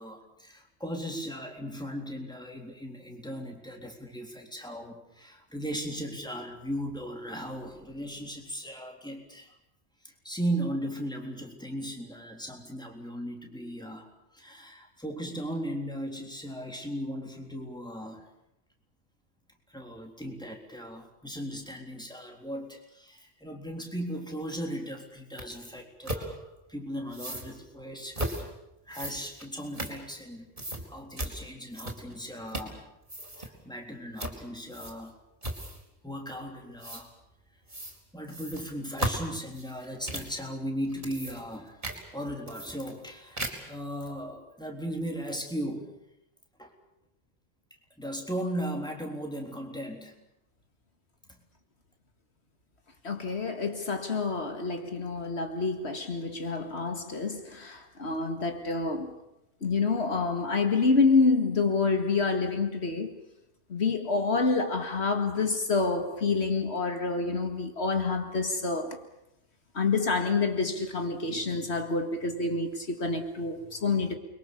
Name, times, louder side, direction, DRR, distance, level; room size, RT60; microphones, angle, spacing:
voice 1, 0.0-9.5 10.0-18.3 19.7-28.5 28.9-30.5 30.9-32.8 33.4-35.1 36.0-37.1 38.1-41.8 42.1-45.9 46.6-46.7 48.0-50.1 51.3-51.4, equal, 5° left, 3.7 m, -37 dB
sound 1, 25.4-25.5 26.0-26.2 27.1-27.5 28.1-28.4 28.9-30.3 30.6-30.8 31.2-31.3 31.7-32.2 32.5-32.8 33.0-33.5 34.2-34.4 34.7-35.1 35.4-35.9 36.8-37.0 37.7-38.0 38.3-40.4 40.8-41.6 41.8-42.0 42.5-43.1 43.4-43.7, right 1 dB, 40° right, 4.8 m, -35 dB
voice 2, 53.0-59.2 59.6-63.1 63.7-69.0 69.7-74.2, left 4 dB, 75° left, 2.2 m, -27 dB
29.0 x 23.0 x 7.0 m
omnidirectional pair, 1.1 m